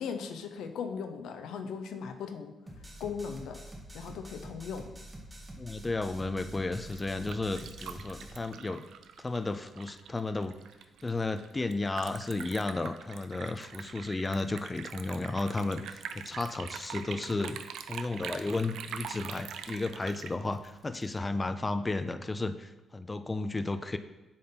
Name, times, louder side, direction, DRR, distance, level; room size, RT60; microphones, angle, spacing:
voice 1, 0.0-2.5 3.0-3.6 3.9-4.9, left 6 dB, 85° left, 7 dB, 0.6 m, -38 dB
sound 1, 2.7-8.3, right 1 dB, 20° right, 1.2 m, -46 dB
voice 2, 5.6-8.8 9.2-10.6 11.0-17.6 17.9-24.0, left 2 dB, 20° left, 10 dB, 0.3 m, -33 dB
Liquid, 6.6-21.2, right 8 dB, 80° right, 0.4 m, -44 dB
7.7 x 3.8 x 3.9 m, 1.1 s
cardioid pair, 105°, 0 cm